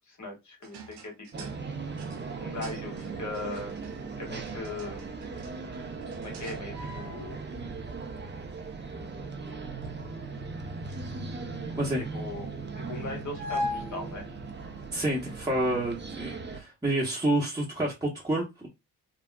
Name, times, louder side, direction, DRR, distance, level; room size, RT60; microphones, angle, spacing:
voice 1, 0.1-1.5 2.4-3.8 4.2-5.2 6.2-7.4 12.1-14.3, left 2 dB, 45° left, 1.9 m, -39 dB
sound 1, 0.6-7.4 8.5-12.4 13.3-14.0 14.9-15.2 15.4-16.0, left 2 dB, 85° right, 0.8 m, -41 dB
sound 2, 1.3-16.6, right 4 dB, 25° right, 0.8 m, -38 dB
voice 2, 14.9-18.7, right 1 dB, 10° right, 1.1 m, -29 dB
3.5 x 2.3 x 2.2 m
supercardioid pair, 50°, 39 cm